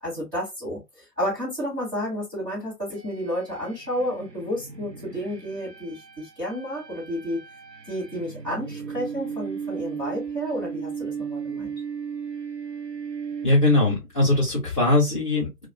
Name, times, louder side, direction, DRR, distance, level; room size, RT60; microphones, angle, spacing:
voice 1, 0.0-0.8 1.2-7.4 7.9-11.7, equal, 10° right, 1.2 m, -31 dB
sound 1, 2.9-14.0, right 6 dB, 90° right, 0.9 m, -36 dB
voice 2, 13.4-15.6, left 2 dB, 5° left, 0.8 m, -21 dB
2.6 x 2.3 x 2.4 m
figure-of-eight pair, 145°, 47 cm